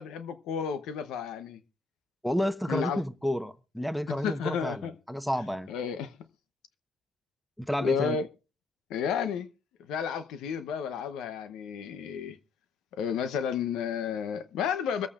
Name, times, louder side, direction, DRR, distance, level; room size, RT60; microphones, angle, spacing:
voice 1, 0.0-1.6 2.7-3.0 4.1-4.9 5.7-6.1 7.8-8.3 8.9-9.5 9.9-12.4 13.0-15.1, left 7 dB, 90° left, 0.9 m, -32 dB
voice 2, 2.2-5.7 7.6-8.2, equal, ahead, 1.0 m, -30 dB
24.5 x 8.6 x 2.5 m
cardioid pair, 90°, 0 cm